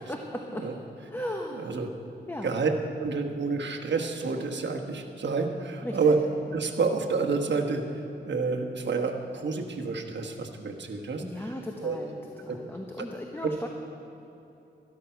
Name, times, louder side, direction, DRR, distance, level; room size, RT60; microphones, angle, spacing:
voice 1, 0.1-0.6 1.1-1.7 2.3-2.6 5.8-6.2 11.2-12.2 12.4-13.7, left 1 dB, 10° left, 2 dB, 0.9 m, -36 dB
voice 2, 1.5-1.9 2.4-2.7 3.0-6.2 6.5-11.5 11.8-12.0 12.5-12.6 13.4-13.5, right 4 dB, 70° right, 2 dB, 1.2 m, -29 dB
12.5 x 12.0 x 5.8 m, 2.9 s
wide cardioid pair, 110°, 19 cm